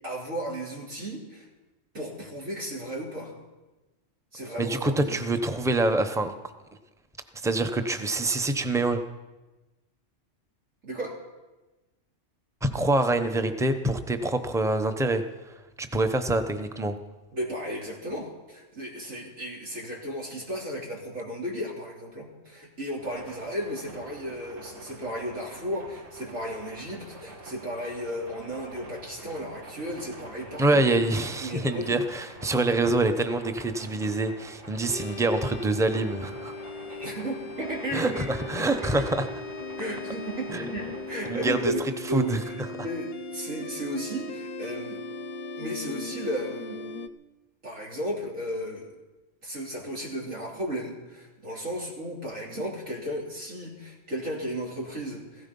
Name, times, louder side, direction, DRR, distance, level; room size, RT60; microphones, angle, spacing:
voice 1, 0.0-1.5 1.9-3.4 4.3-5.2 10.8-11.2 17.3-31.0 31.4-32.0 36.9-38.3 38.6-39.1 39.8-45.0 45.6-46.8 47.6-48.9 49.4-55.5, equal, 90° right, -2 dB, 3.8 m, -34 dB
voice 2, 4.6-6.3 7.4-9.0 12.6-15.2 15.8-17.0 30.6-36.5 37.9-39.3 40.5-40.6 41.3-41.7 42.1-42.4, right 2 dB, 5° right, 8 dB, 0.7 m, -25 dB
sound 1, 23.0-41.7, right 2 dB, 60° right, 2.4 m, -46 dB
sound 2, 34.9-47.1, left 3 dB, 50° left, 0.6 m, -38 dB
16.5 x 15.5 x 5.4 m, 1.1 s
omnidirectional pair, 1.3 m